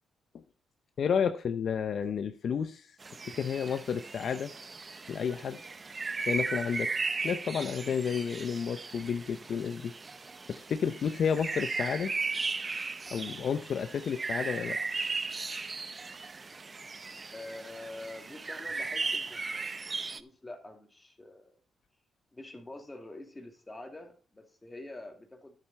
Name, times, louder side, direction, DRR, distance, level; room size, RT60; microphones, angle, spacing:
voice 1, 1.0-2.9 3.2-4.5 5.1-5.6 6.2-6.9 7.2-9.9 10.5-12.1 13.1-14.8, left 7 dB, 65° left, 9 dB, 0.6 m, -31 dB
sound 1, 3.0-20.2, right 4 dB, 35° right, 0.6 m, -37 dB
voice 2, 17.3-21.6 22.3-25.6, left 2 dB, 20° left, 4 dB, 2.4 m, -46 dB
11.0 x 7.6 x 4.1 m, 0.41 s
supercardioid pair, 60°, 0 cm